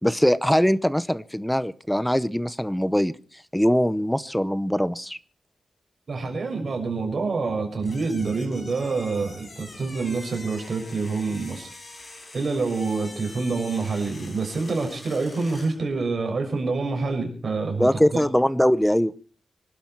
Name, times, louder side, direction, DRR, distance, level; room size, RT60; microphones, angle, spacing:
voice 1, 0.0-3.1 3.5-5.2 17.8-19.1, equal, 5° left, 17 dB, 0.7 m, -22 dB
voice 2, 6.1-11.7 12.3-18.2, right 4 dB, 45° right, 3 dB, 6.6 m, -27 dB
sound 1, 7.8-15.8, left 2 dB, 30° left, 6.0 m, -44 dB
26.0 x 12.0 x 4.6 m, 0.41 s
wide cardioid pair, 145°, 0 cm